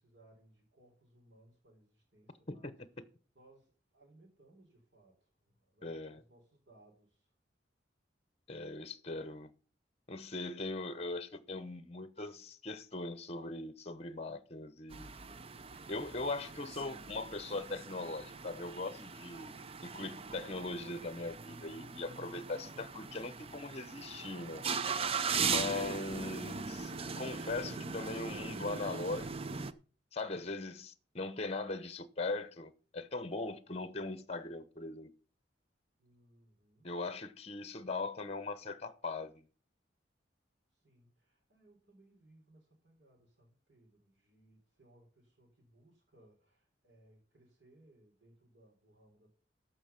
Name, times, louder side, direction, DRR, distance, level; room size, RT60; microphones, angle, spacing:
voice 1, 0.0-2.8 3.3-7.3 36.0-36.9 40.7-49.3, right 1 dB, 60° right, 4.1 m, -65 dB
voice 2, 5.8-6.2 8.5-9.5 10.1-15.2 15.9-19.5 19.8-24.6 25.4-29.6 30.1-35.1 36.8-39.4, left 3 dB, 35° left, 0.8 m, -40 dB
sound 1, 14.9-29.7, right 5 dB, 30° right, 0.5 m, -40 dB
14.0 x 5.6 x 5.8 m
head